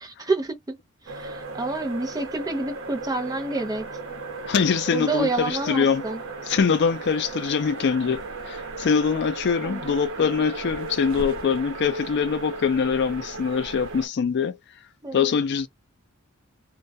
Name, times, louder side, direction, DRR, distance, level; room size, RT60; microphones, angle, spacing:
voice 1, 0.0-0.8 1.0-3.9 4.9-6.2 9.6-9.9 15.0-15.3, right 3 dB, 15° right, 0.5 m, -28 dB
sound 1, 1.1-14.1, right 3 dB, 60° right, 0.9 m, -35 dB
voice 2, 4.5-6.0 6.5-14.6 15.1-15.7, left 6 dB, 55° left, 0.4 m, -23 dB
2.3 x 2.1 x 2.6 m
head